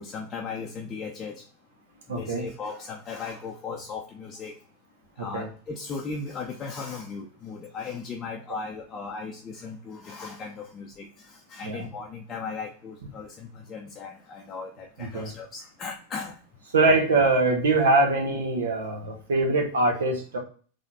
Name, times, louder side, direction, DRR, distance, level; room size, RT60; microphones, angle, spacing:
voice 1, 0.0-1.4 2.2-4.5 5.2-16.3, left 4 dB, 25° left, 0 dB, 0.7 m, -37 dB
voice 2, 2.1-2.4 5.3-5.5 11.6-11.8 15.0-15.3 16.7-20.4, right 2 dB, 65° right, 2 dB, 1.3 m, -23 dB
4.0 x 3.2 x 4.0 m, 0.41 s
figure-of-eight pair, 90°, 0 cm